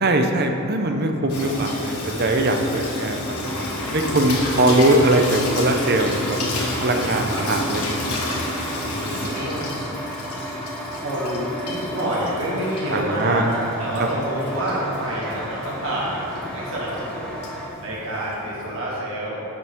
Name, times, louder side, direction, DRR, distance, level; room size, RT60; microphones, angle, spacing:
voice 1, 0.0-6.4 6.8-8.1 12.9-13.5, right 1 dB, 45° right, 4 dB, 0.7 m, -21 dB
voice 2, 1.2-1.5 4.2-4.8 7.1-7.5 8.8-9.7 11.0-17.4 17.8-19.4, right 1 dB, 60° right, -6 dB, 1.8 m, -28 dB
Water tap faucet / Sink (filling or washing), 1.3-18.8, left 1 dB, 85° left, 1.6 m, -30 dB
sound 1, 2.9-17.7, equal, 5° left, 1.2 m, -34 dB
10.5 x 6.9 x 3.7 m, 2.8 s
head